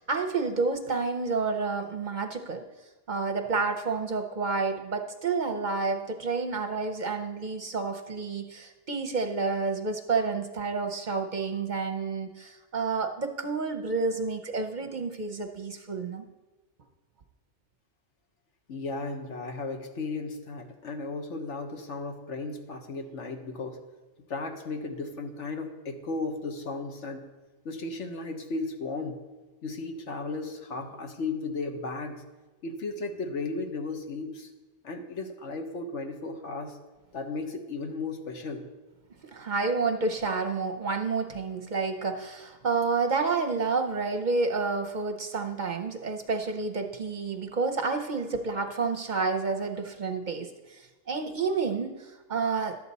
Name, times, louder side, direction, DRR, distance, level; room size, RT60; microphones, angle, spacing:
voice 1, 0.0-2.6 3.1-16.3 39.3-52.8, right 4 dB, 45° right, 5 dB, 0.7 m, -29 dB
voice 2, 18.7-23.8 24.3-27.3 27.6-29.2 29.6-32.2 32.6-34.5 34.8-36.8 37.1-38.7, left 3 dB, 80° left, 5 dB, 1.4 m, -35 dB
11.5 x 8.4 x 4.1 m, 1.2 s
omnidirectional pair, 1.2 m